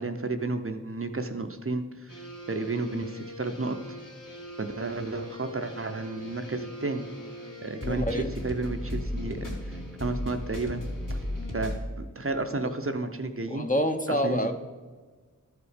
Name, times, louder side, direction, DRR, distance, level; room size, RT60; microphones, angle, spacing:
voice 1, 0.0-2.2 2.5-3.8 4.6-7.1 7.6-10.8 11.1-11.2 11.5-13.7 14.1-14.5, right 3 dB, 45° right, 6 dB, 0.7 m, -32 dB
sound 1, 2.1-11.9, left 1 dB, 75° left, 2.4 m, -37 dB
voice 2, 7.8-8.3 12.6-12.7 13.5-14.5, equal, 25° left, 6 dB, 0.8 m, -27 dB
13.0 x 4.9 x 5.1 m, 1.4 s
wide cardioid pair, 50°, 32 cm